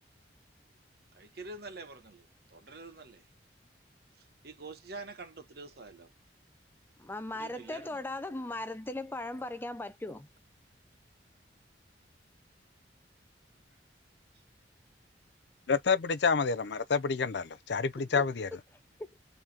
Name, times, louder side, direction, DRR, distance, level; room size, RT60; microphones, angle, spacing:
voice 1, 1.1-3.2 4.4-6.1 7.3-8.0, right 3 dB, 55° right, 1.1 m, -46 dB
voice 2, 7.0-10.3 18.0-18.2 19.0-19.1, left 1 dB, 10° left, 0.4 m, -38 dB
voice 3, 15.7-18.5, left 5 dB, 65° left, 0.5 m, -28 dB
3.9 x 2.9 x 3.3 m
head